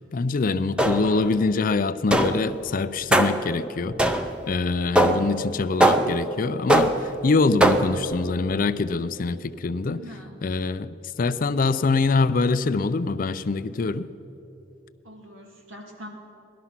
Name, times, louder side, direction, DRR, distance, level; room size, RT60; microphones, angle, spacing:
voice 1, 0.1-3.9 4.5-10.0 10.4-14.1, left 3 dB, 45° left, 13 dB, 0.4 m, -24 dB
sound 1, 0.8-1.3 2.1-2.5 3.1-3.5 4.0-4.5 5.0-5.4 5.8-6.3 6.7-7.2 7.6-8.1, right 1 dB, 5° right, 0.5 m, -21 dB
voice 2, 9.8-10.4 15.0-16.1, left 1 dB, 85° right, 1 dB, 2.3 m, -43 dB
18.0 x 12.5 x 5.8 m, 3.0 s
head